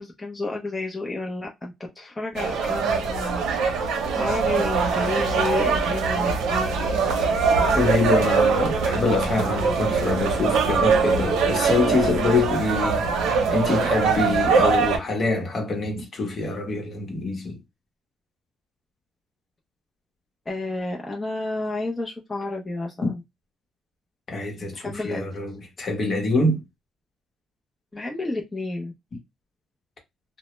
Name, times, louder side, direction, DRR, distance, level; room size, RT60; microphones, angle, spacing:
voice 1, 0.0-6.7 20.5-23.2 24.7-25.3 27.9-28.9, left 2 dB, 20° left, 0.5 m, -31 dB
sound 1, 2.3-15.0, right 5 dB, 90° right, 0.6 m, -22 dB
voice 2, 7.8-17.6 23.0-23.1 24.3-26.6, left 3 dB, 50° left, 0.9 m, -25 dB
2.1 x 2.0 x 3.0 m
cardioid pair, 90°, 0 cm